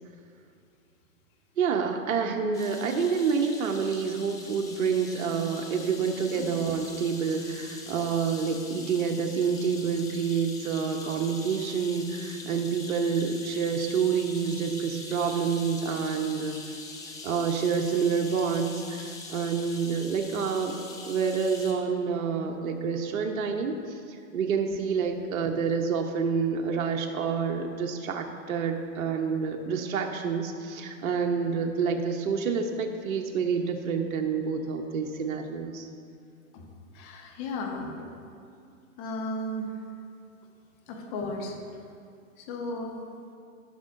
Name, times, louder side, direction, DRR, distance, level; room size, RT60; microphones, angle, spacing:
voice 1, 1.6-16.6 17.2-23.7 24.1-35.9, right 6 dB, 75° right, 3 dB, 1.0 m, -28 dB
sound 1, 2.5-21.7, left 3 dB, 10° left, 0.5 m, -43 dB
voice 2, 36.9-38.1 39.0-39.7 40.9-41.6 42.4-43.0, left 1 dB, 35° left, 2 dB, 1.4 m, -35 dB
15.0 x 6.5 x 2.6 m, 2.4 s
hypercardioid pair, 140°, 42 cm